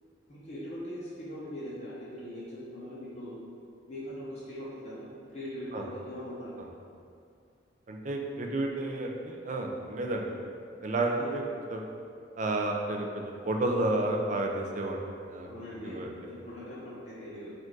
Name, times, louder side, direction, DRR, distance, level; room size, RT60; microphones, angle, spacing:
voice 1, 0.3-3.3 3.9-6.5 11.2-11.3 15.4-17.5, equal, 35° left, -9 dB, 0.8 m, -41 dB
voice 2, 7.9-10.3 10.8-11.4 11.7-11.8 12.4-15.5 15.8-16.1, right 2 dB, 40° right, 1 dB, 0.4 m, -31 dB
4.5 x 2.5 x 4.6 m, 2.3 s
head